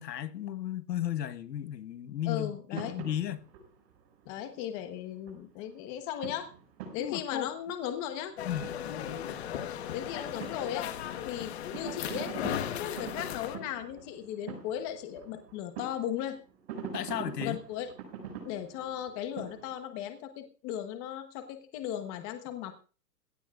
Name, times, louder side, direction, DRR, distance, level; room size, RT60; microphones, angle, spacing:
voice 1, 0.0-3.5 7.0-7.5 8.4-8.7 16.9-17.6, left 11 dB, 75° left, 10 dB, 1.4 m, -34 dB
voice 2, 2.3-2.9 4.3-6.5 6.9-8.3 9.9-10.9 11.2-12.4 12.7-16.4 17.4-17.9 18.4-22.7, left 10 dB, 20° left, 7 dB, 1.1 m, -37 dB
sound 1, 2.8-5.4 5.7-5.9 6.2-7.8 8.1-9.9 10.2-19.7, right 6 dB, 40° right, 6.1 m, -45 dB
sound 2, 8.4-13.6, left 10 dB, 40° left, 1.3 m, -37 dB
19.0 x 17.5 x 2.5 m, 0.37 s
hypercardioid pair, 170°, 49 cm